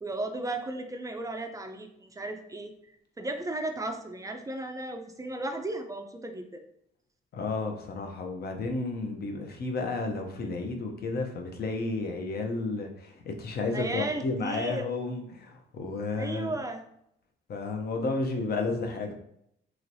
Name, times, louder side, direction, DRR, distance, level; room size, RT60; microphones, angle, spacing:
voice 1, 0.0-2.7 3.2-6.6 13.7-14.8 16.2-16.8, right 2 dB, 15° right, 5 dB, 0.4 m, -35 dB
voice 2, 7.3-16.5 17.5-19.1, left 3 dB, 50° left, 3 dB, 0.6 m, -32 dB
3.1 x 3.0 x 2.6 m, 0.75 s
cardioid pair, 90°, 20 cm